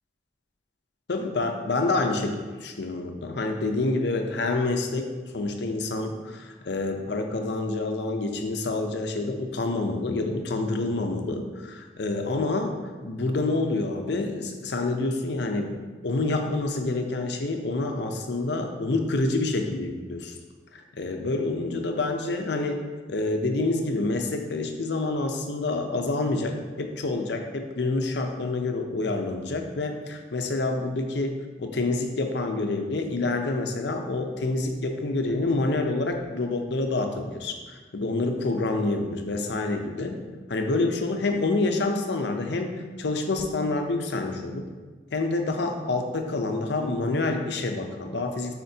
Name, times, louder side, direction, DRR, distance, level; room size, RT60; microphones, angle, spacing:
voice 1, 1.1-15.7 16.0-20.4 20.7-22.8 23.1-40.2 40.5-44.7 45.1-48.5, left 2 dB, 65° left, 4 dB, 0.6 m, -27 dB
8.7 x 4.3 x 2.8 m, 1.4 s
head